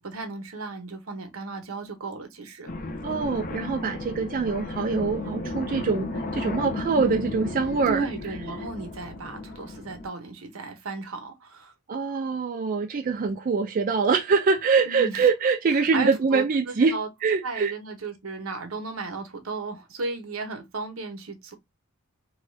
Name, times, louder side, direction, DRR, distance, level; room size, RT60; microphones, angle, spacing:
voice 1, 0.0-2.7 7.9-11.7 14.9-15.2 15.8-17.1 17.4-21.5, right 4 dB, 90° right, 0.8 m, -34 dB
sound 1, 2.7-10.1, left 2 dB, 40° left, 0.5 m, -34 dB
voice 2, 3.0-8.1 11.9-17.7, right 5 dB, 40° right, 0.4 m, -24 dB
2.7 x 2.3 x 3.1 m
head